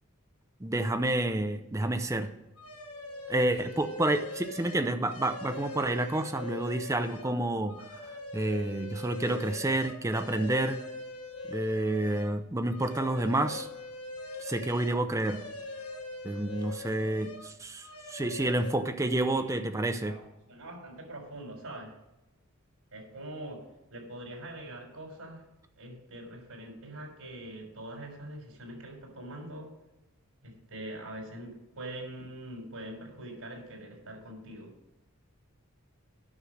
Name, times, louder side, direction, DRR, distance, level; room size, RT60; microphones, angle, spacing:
voice 1, 0.6-2.3 3.3-7.8 8.3-10.8 11.5-13.7 14.4-15.4 16.2-20.1, right 1 dB, 15° right, 8 dB, 0.5 m, -29 dB
sound 1, 2.6-7.3 7.7-12.4 12.7-17.5 17.8-18.7, left 2 dB, 85° left, 1.8 m, -42 dB
voice 2, 19.2-19.6 20.0-21.9 22.9-23.6 23.9-25.4 25.8-29.7 30.4-34.7, right 1 dB, 85° right, 1 dB, 4.0 m, -43 dB
9.7 x 6.4 x 6.4 m, 0.94 s
head